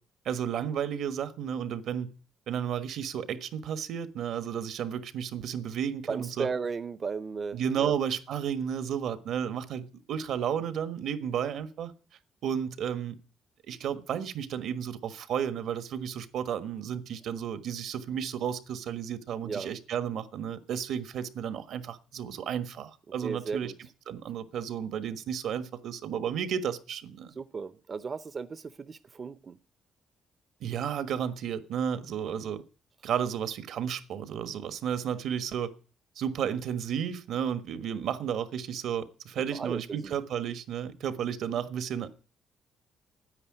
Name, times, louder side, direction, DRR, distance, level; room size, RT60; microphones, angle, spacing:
voice 1, 0.2-2.1 2.5-6.5 7.5-11.9 12.4-13.2 13.7-23.7 24.1-27.3 30.6-32.6 33.0-35.7 36.1-42.2, right 8 dB, 75° right, 1.4 m, -32 dB
voice 2, 6.1-7.9 19.4-19.7 23.2-23.7 27.3-29.6 39.5-40.1, right 5 dB, 40° right, 0.6 m, -35 dB
9.9 x 8.7 x 9.9 m
cardioid pair, 90°, 0 cm